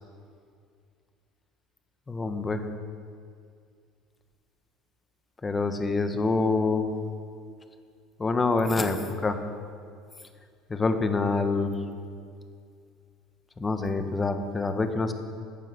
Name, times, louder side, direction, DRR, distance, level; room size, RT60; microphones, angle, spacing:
voice 1, 2.1-2.6 5.4-6.9 8.2-9.4 10.7-11.7 13.6-15.1, left 3 dB, 20° left, 8 dB, 1.3 m, -26 dB
14.5 x 9.3 x 7.0 m, 2.3 s
supercardioid pair, 90°, 0 cm